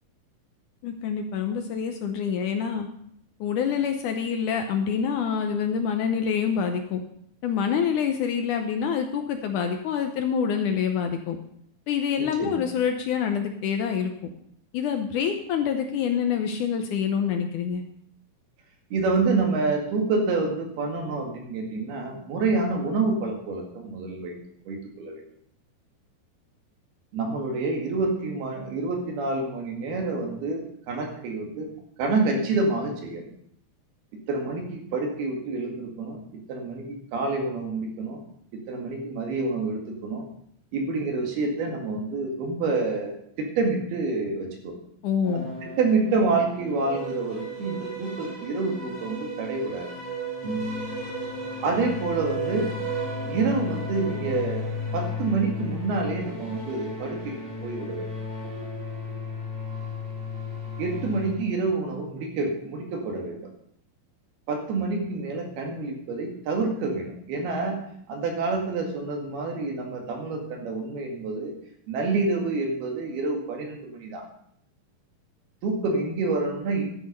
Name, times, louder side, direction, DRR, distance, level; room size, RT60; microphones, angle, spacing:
voice 1, 0.8-2.9 3.4-7.0 7.4-11.4 11.9-14.3 14.7-17.8 45.0-45.5, left 7 dB, 75° left, 6 dB, 2.0 m, -26 dB
voice 2, 18.9-24.4 24.7-25.2 27.1-31.7 32.0-33.3 34.3-38.2 38.5-40.3 40.7-44.7 45.3-49.9 51.6-52.7 53.3-54.7 54.9-57.4 57.6-58.1 60.8-63.5 64.5-67.8 68.1-71.6 71.9-74.2 75.6-76.8, right 3 dB, 90° right, 1 dB, 4.0 m, -28 dB
sound 1, 45.2-61.3, left 1 dB, 35° right, 5.3 m, -34 dB
13.0 x 8.2 x 5.3 m, 0.70 s
omnidirectional pair, 4.3 m